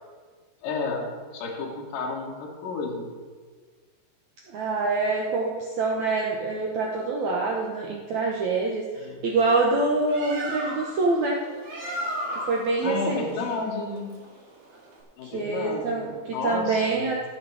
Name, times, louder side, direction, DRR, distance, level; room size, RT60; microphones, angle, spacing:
voice 1, 0.6-1.1 1.3-3.1 9.0-9.3 12.8-14.1 15.2-16.0 16.3-17.1, left 4 dB, 60° left, -1 dB, 2.9 m, -31 dB
voice 2, 4.5-11.4 12.3-13.3 15.2-16.2 16.4-17.3, right 3 dB, 75° right, -1 dB, 1.6 m, -25 dB
Bird, 9.9-15.0, right 1 dB, 45° right, 3.2 m, -36 dB
17.0 x 6.1 x 4.8 m, 1.5 s
omnidirectional pair, 4.7 m